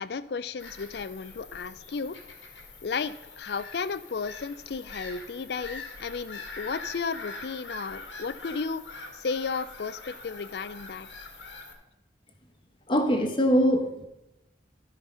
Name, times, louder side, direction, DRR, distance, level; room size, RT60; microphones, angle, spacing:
voice 1, 0.0-2.2 2.8-11.1, left 5 dB, 65° left, 15 dB, 0.4 m, -34 dB
Bird vocalization bird call bird song / Gull seagull, 0.6-11.7, left 3 dB, 85° left, 1.5 m, -44 dB
voice 2, 12.9-14.0, equal, 25° left, 4 dB, 1.2 m, -23 dB
13.0 x 5.2 x 5.5 m, 0.91 s
head